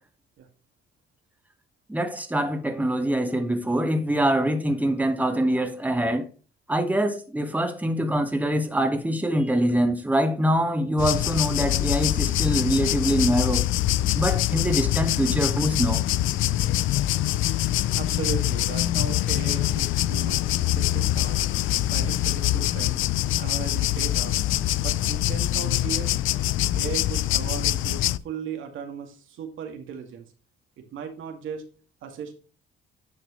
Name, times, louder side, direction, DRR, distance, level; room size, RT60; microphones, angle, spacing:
voice 1, 1.9-6.3 6.7-13.7 14.1-16.0, right 1 dB, 10° right, 1.7 m, -24 dB
sound 1, 11.0-28.2, left 14 dB, 85° left, 0.5 m, -24 dB
voice 2, 17.9-21.4 21.9-23.1 23.4-24.3 24.8-26.1 26.7-30.3 30.8-31.6 32.0-32.3, right 7 dB, 80° right, 2.1 m, -36 dB
10.5 x 6.2 x 3.2 m
cardioid pair, 90°, 20 cm